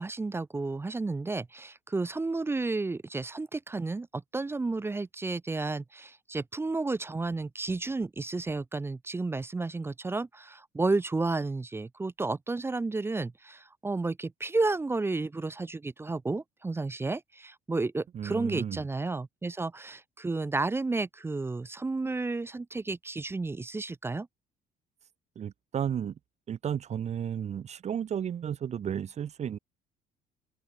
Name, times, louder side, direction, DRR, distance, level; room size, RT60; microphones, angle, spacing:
voice 1, 0.0-24.3, right 3 dB, 15° right, 0.5 m, -32 dB
voice 2, 18.1-18.8 25.4-26.2 26.5-29.6, right 8 dB, 40° right, 0.9 m, -33 dB
open air
cardioid pair, 110°, 17 cm